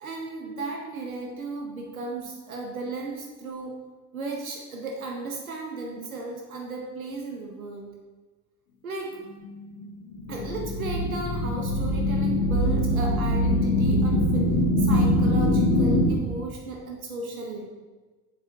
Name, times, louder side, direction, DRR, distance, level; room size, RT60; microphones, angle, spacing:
voice 1, 0.0-3.7 4.1-7.9 8.8-9.2 10.3-14.5 14.8-17.7, right 3 dB, 90° right, 1 dB, 0.9 m, -35 dB
sound 1, 9.4-16.1, left 1 dB, 85° left, 0.9 m, -23 dB
6.9 x 5.1 x 4.6 m, 1.3 s
hypercardioid pair, 60°, 41 cm